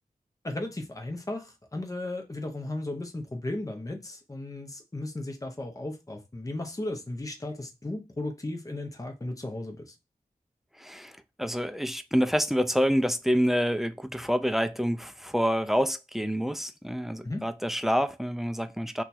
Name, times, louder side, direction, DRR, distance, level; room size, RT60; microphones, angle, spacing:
voice 1, 0.4-9.9 17.2-17.4, left 2 dB, 25° left, 0.7 m, -35 dB
voice 2, 10.8-11.1 11.4-19.0, equal, ahead, 0.3 m, -27 dB
2.8 x 2.3 x 4.0 m
wide cardioid pair, 70°, 15 cm